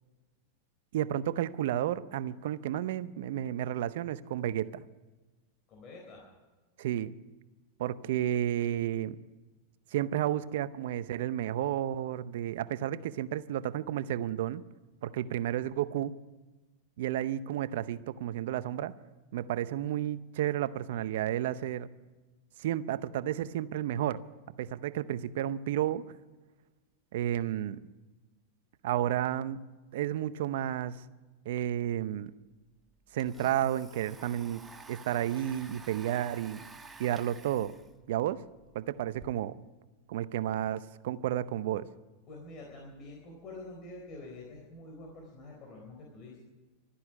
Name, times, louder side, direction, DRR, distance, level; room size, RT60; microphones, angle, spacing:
voice 1, 0.9-4.8 6.8-7.2 7.8-9.2 9.9-14.6 15.0-16.1 17.0-18.9 19.3-21.9 22.6-24.2 24.6-26.0 27.1-27.8 28.8-29.6 29.9-31.0 31.5-32.3 33.1-36.6 37.0-37.7 38.1-38.4 38.7-39.6 40.1-41.9, right 12 dB, 70° right, 16 dB, 0.7 m, -32 dB
voice 2, 5.7-6.3 42.3-46.4, left 2 dB, 40° left, 0 dB, 4.0 m, -47 dB
Domestic sounds home sounds, 32.3-32.4 32.6-39.3, right 4 dB, 15° right, 1.1 m, -52 dB
13.0 x 9.9 x 9.7 m, 1.2 s
hypercardioid pair, 115°, 0 cm